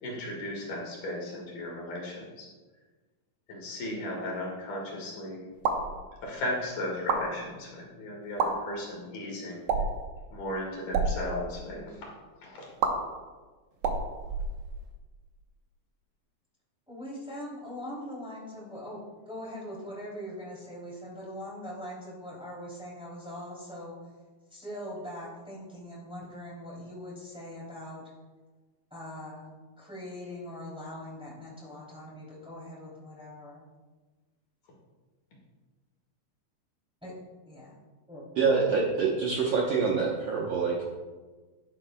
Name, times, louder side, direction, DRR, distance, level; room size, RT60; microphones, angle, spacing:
voice 1, 0.0-2.5 3.5-5.5 6.2-9.7 10.3-12.0 12.4-12.6, left 1 dB, 60° left, -2 dB, 3.2 m, -36 dB
sound 1, 5.5-5.9 6.9-7.2 8.3-8.5 9.7-10.0 10.8-11.1 12.8-12.9 13.8-15.0, right 5 dB, 70° right, 2.1 m, -28 dB
voice 2, 16.9-23.9 24.5-28.0 28.9-29.5 29.8-33.6 37.0-37.1 37.4-37.7 38.1-38.2, left 1 dB, ahead, -6 dB, 2.2 m, -41 dB
voice 3, 38.4-40.8, right 5 dB, 85° right, -3 dB, 1.4 m, -26 dB
11.5 x 11.0 x 2.3 m, 1.3 s
omnidirectional pair, 4.4 m